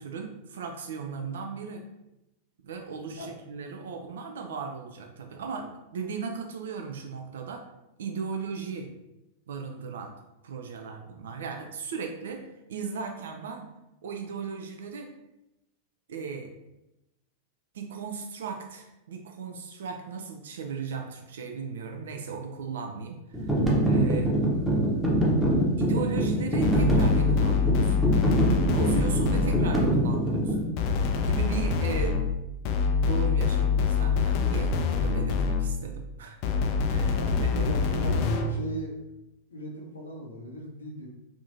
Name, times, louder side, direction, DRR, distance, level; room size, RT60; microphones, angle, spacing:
voice 1, 0.0-1.8 2.6-7.7 8.0-8.9 9.5-10.2 10.4-13.7 14.0-15.1 16.1-16.5 17.7-24.3 25.8-28.0 28.7-30.6 31.2-32.2 33.0-36.4 36.9-38.6, right 5 dB, 60° right, 3 dB, 0.3 m, -36 dB
sound 1, 23.3-30.7, right 1 dB, 5° right, 0.8 m, -24 dB
sound 2, 26.6-29.9 30.8-35.9 36.4-38.6, left 5 dB, 45° left, 0.3 m, -25 dB
voice 2, 37.1-38.9 39.5-41.1, equal, 75° left, -1 dB, 0.7 m, -39 dB
3.4 x 2.6 x 2.6 m, 0.91 s
figure-of-eight pair, 90°, 0 cm